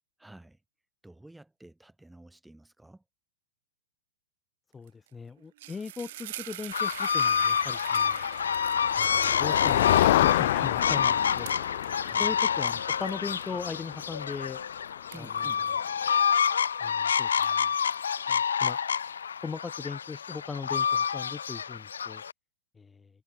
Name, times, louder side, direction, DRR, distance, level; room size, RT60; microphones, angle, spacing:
voice 1, 0.2-0.6 1.0-3.0 12.0-12.3 15.1-15.7, right 1 dB, 5° right, 4.9 m, -50 dB
voice 2, 4.7-8.2 9.0-11.5 12.2-14.6 15.2-15.5 16.8-17.7 18.3-18.8 19.4-22.2 22.8-23.1, left 5 dB, 15° left, 2.3 m, -39 dB
sound 1, 4.9-5.1 5.4-16.9 17.3-19.2, right 15 dB, 60° right, 3.1 m, -46 dB
sound 2, 6.7-22.3, left 7 dB, 80° left, 0.4 m, -28 dB
Motor vehicle (road), 7.9-15.7, left 15 dB, 60° left, 0.8 m, -29 dB
hypercardioid pair, 105°, 0 cm